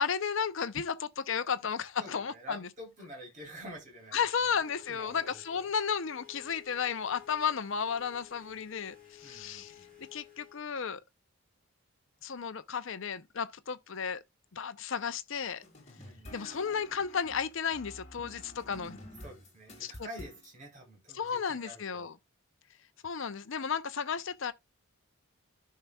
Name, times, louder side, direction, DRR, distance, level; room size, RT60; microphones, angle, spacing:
voice 1, 0.0-2.7 4.1-9.7 10.1-11.0 12.2-14.2 14.5-15.6 16.3-19.0 19.8-20.1 21.1-22.1 23.0-24.5, left 6 dB, 60° left, 0.6 m, -33 dB
voice 2, 2.0-4.2 4.5-4.6 4.9-5.7 9.2-10.1 16.0-16.4 19.2-22.1, equal, 35° right, 3.3 m, -48 dB
sound 1, 4.5-10.6, left 10 dB, 5° left, 5.5 m, -55 dB
sound 2, 15.6-20.5, left 1 dB, 30° left, 1.8 m, -50 dB
13.5 x 5.6 x 2.3 m
head